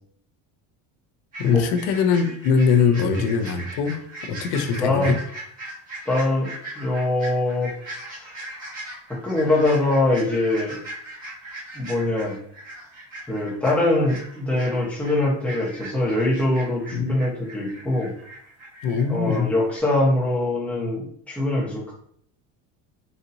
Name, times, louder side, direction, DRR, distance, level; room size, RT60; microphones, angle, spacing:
sound 1, 1.3-19.4 19.7-19.8, right 1 dB, 20° right, 1.3 m, -39 dB
voice 1, 1.4-5.2 16.9-17.2 18.8-19.5, left 6 dB, 80° left, 7 dB, 0.6 m, -22 dB
voice 2, 4.8-5.1 6.1-7.7 8.1-8.3 9.1-10.8 11.7-12.4 13.3-18.1 19.1-21.9, left 2 dB, 5° left, -5 dB, 0.9 m, -23 dB
4.1 x 2.7 x 2.6 m, 0.64 s
cardioid pair, 160°, 36 cm